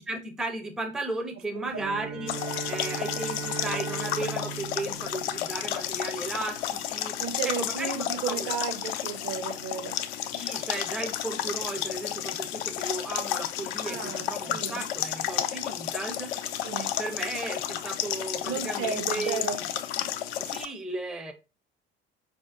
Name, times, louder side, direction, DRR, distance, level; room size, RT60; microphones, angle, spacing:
voice 1, 0.0-2.3 2.7-7.1 7.4-7.9 8.2-8.5 10.3-16.3 16.8-19.7 20.4-21.3, right 2 dB, ahead, 0.5 m, -35 dB
voice 2, 1.6-2.0 7.2-9.9 13.8-14.8 16.6-16.9 18.5-19.6, right 6 dB, 40° right, 0.7 m, -34 dB
Bowed string instrument, 1.6-6.1, right 6 dB, 70° right, 1.1 m, -38 dB
sound 1, 2.3-20.7, left 11 dB, 65° left, 0.5 m, -32 dB
4.9 x 2.6 x 2.4 m
figure-of-eight pair, 55°, 33 cm